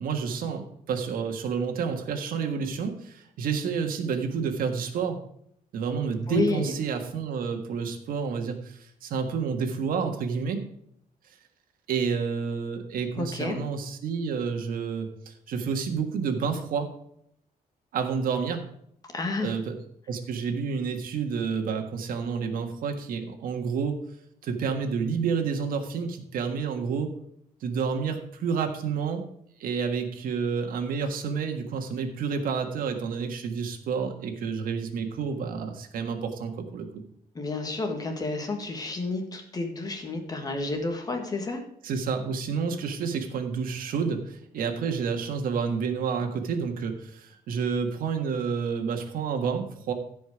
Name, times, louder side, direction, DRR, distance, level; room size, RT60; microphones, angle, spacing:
voice 1, 0.0-5.2 5.7-10.6 11.9-17.0 17.9-18.6 19.4-19.7 20.1-24.0 24.4-27.1 27.6-29.2 29.6-37.0 41.8-49.9, right 6 dB, 70° right, 4 dB, 1.6 m, -29 dB
voice 2, 6.3-6.7 13.2-13.6 19.1-19.6 37.3-41.6, left 3 dB, 25° left, 4 dB, 1.7 m, -30 dB
15.5 x 5.3 x 4.9 m, 0.70 s
cardioid pair, 180°, 15 cm